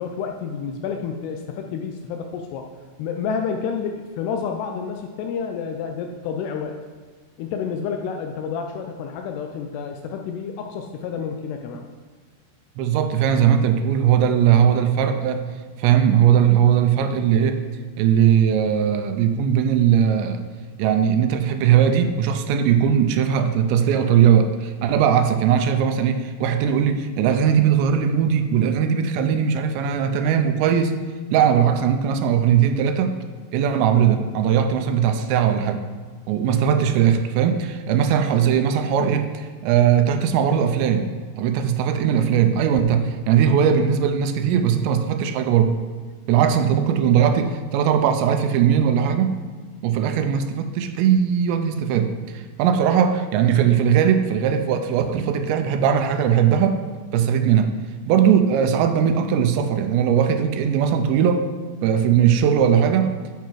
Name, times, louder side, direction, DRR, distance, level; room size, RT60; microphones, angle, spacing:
voice 1, 0.0-2.7 3.0-6.8 7.4-11.9, left 6 dB, 80° left, 4 dB, 2.4 m, -29 dB
voice 2, 12.8-15.5 15.8-17.6 18.0-20.4 20.8-31.0 31.3-33.2 33.5-35.8 36.3-41.1 41.4-45.8 46.3-49.3 49.8-56.8 57.1-57.7 58.1-61.5 61.8-63.1, right 8 dB, 85° right, 7 dB, 2.8 m, -19 dB
9.0 x 5.7 x 4.6 m, 1.5 s
omnidirectional pair, 5.1 m